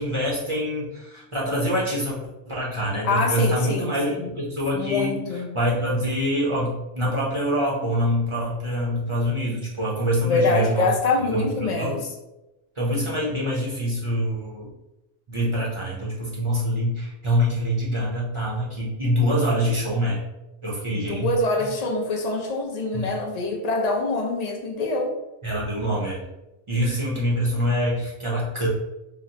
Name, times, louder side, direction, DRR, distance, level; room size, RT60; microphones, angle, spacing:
voice 1, 0.0-2.2 2.5-10.9 11.3-12.0 12.8-14.7 15.3-20.2 20.6-21.3 21.6-21.7 22.9-23.1 25.4-26.2 26.7-28.7, equal, 35° right, -5 dB, 0.5 m, -25 dB
voice 2, 3.1-4.3 4.7-5.5 10.3-12.0 20.9-25.1, left 3 dB, 65° left, 1 dB, 0.4 m, -25 dB
3.9 x 2.1 x 2.7 m, 0.96 s
omnidirectional pair, 1.2 m